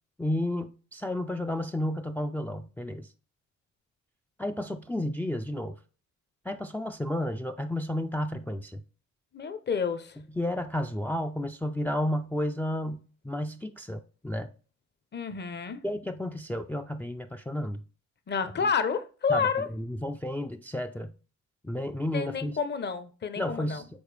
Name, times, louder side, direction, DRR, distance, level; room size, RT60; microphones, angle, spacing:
voice 1, 0.2-3.1 4.4-5.7 6.5-8.8 10.3-14.5 15.8-17.8 19.3-19.5 19.7-21.1 21.6-22.5 23.4-23.9, left 1 dB, 5° left, 0.4 m, -32 dB
voice 2, 9.3-10.2 15.1-15.8 18.3-19.7 22.1-23.8, left 6 dB, 35° left, 0.8 m, -29 dB
7.1 x 4.1 x 3.3 m
cardioid pair, 90°, 30 cm